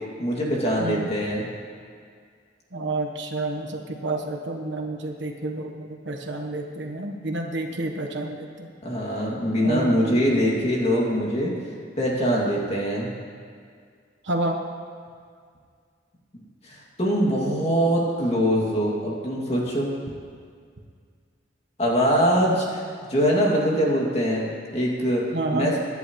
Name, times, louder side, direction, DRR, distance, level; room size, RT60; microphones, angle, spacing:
voice 1, 0.2-1.5 8.8-11.5 12.0-13.1 16.6-19.9 21.8-22.8 23.1-25.2 25.5-25.8, equal, 35° left, -3 dB, 2.5 m, -23 dB
voice 2, 0.8-1.1 2.7-8.7 9.6-10.5 14.2-14.6 25.3-25.7, right 2 dB, 65° right, 3 dB, 1.3 m, -29 dB
24.5 x 10.5 x 3.2 m, 2.1 s
head